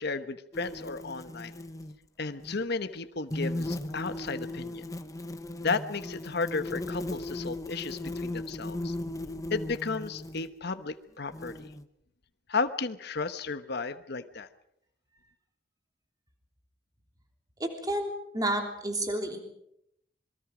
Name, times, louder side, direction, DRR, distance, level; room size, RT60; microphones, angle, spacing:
voice 1, 0.0-1.5 2.2-4.9 5.6-8.9 9.5-11.7 12.5-14.5, left 4 dB, 60° left, 10 dB, 1.2 m, -33 dB
sound 1, 0.5-1.9 2.4-2.6 3.3-10.5 11.3-11.8, left 1 dB, 20° left, 1.0 m, -37 dB
voice 2, 17.6-19.4, right 1 dB, 20° right, 3 dB, 3.3 m, -31 dB
26.5 x 22.5 x 5.1 m, 0.76 s
head